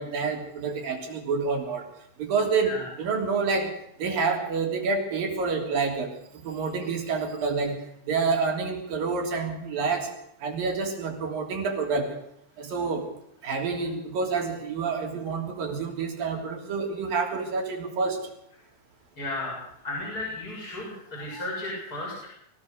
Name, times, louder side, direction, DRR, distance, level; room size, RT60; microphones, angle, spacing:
voice 1, 0.0-1.9 2.2-7.8 8.0-10.1 10.4-12.2 12.6-13.1 13.4-18.2 21.3-21.4, right 4 dB, 85° right, 2 dB, 5.0 m, -28 dB
voice 2, 19.2-19.6 19.8-22.3, left 2 dB, 25° left, -4 dB, 7.7 m, -34 dB
24.0 x 16.5 x 6.6 m, 0.73 s
omnidirectional pair, 3.9 m